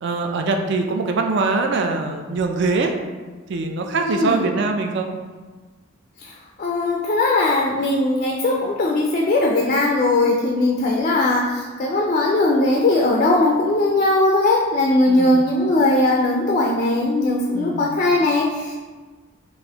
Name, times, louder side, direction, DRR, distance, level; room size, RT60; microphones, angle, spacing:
voice 1, 0.0-2.9 3.5-5.1 15.1-15.4 17.5-17.9, right 3 dB, 55° right, 4 dB, 0.3 m, -23 dB
voice 2, 4.0-4.4 6.2-6.3 6.6-18.7, left 2 dB, 35° left, -2 dB, 0.3 m, -19 dB
3.9 x 2.5 x 2.8 m, 1.3 s
head